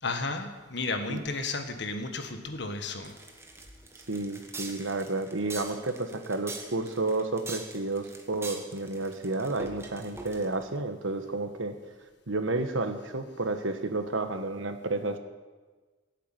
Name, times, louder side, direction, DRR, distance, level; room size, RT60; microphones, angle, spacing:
voice 1, 0.0-3.1, left 3 dB, 60° left, 6 dB, 1.6 m, -33 dB
sound 1, 3.0-10.7, right 2 dB, 15° right, 1.5 m, -43 dB
voice 2, 4.1-11.7 12.3-15.2, right 2 dB, 80° right, 8 dB, 1.4 m, -31 dB
15.5 x 8.3 x 9.2 m, 1.3 s
head